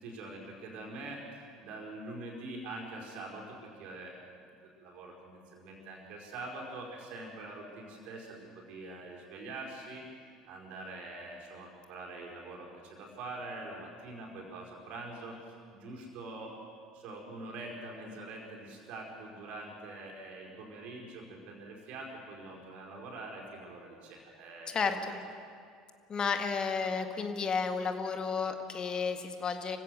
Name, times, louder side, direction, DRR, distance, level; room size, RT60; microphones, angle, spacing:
voice 1, 0.0-4.2 4.6-10.0 10.5-16.5 16.9-25.2, right 2 dB, 55° right, -1 dB, 4.8 m, -44 dB
voice 2, 24.7-25.2 26.1-29.8, left 5 dB, 35° left, 6 dB, 1.9 m, -32 dB
25.0 x 16.0 x 6.5 m, 2.3 s
figure-of-eight pair, 65°, 3 cm